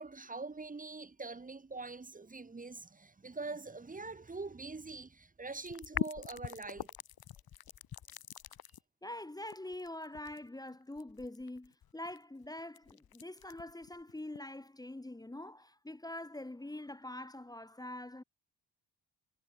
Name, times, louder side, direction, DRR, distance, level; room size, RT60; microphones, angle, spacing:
voice 1, 0.0-6.9, right 3 dB, 20° right, 2.4 m, -44 dB
sound 1, 5.7-8.8 9.5-14.4, left 10 dB, 60° left, 2.2 m, -42 dB
voice 2, 9.0-18.2, left 1 dB, 10° left, 2.1 m, -44 dB
wide cardioid pair, 170°, 41 cm